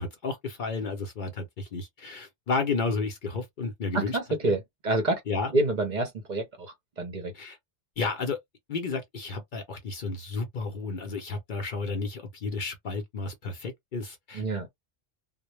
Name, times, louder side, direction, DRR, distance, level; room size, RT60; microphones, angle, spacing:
voice 1, 0.0-4.2 4.4-4.5 5.3-5.5 7.3-7.6 8.0-8.4 8.7-14.4, left 4 dB, 55° left, 0.6 m, -32 dB
voice 2, 3.9-5.2 5.5-7.3 14.3-14.7, right 2 dB, 50° right, 0.7 m, -28 dB
2.1 x 2.0 x 3.0 m
omnidirectional pair, 1.1 m